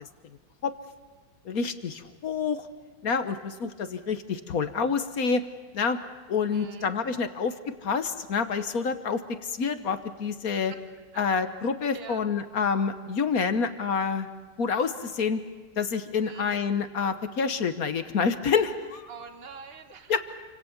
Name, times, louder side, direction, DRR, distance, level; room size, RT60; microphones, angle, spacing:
voice 1, 1.4-2.7 3.0-5.4 5.7-6.0 6.3-10.7 11.2-14.3 14.6-15.4 15.8-19.1 20.1-20.2, left 5 dB, 55° left, 10 dB, 1.5 m, -28 dB
voice 2, 6.5-6.9 10.7-10.8 11.1-11.2 11.9-12.2 16.2-16.5 19.1-20.2, right 6 dB, 35° right, 6 dB, 1.7 m, -43 dB
28.5 x 25.5 x 7.2 m, 1.4 s
omnidirectional pair, 1.9 m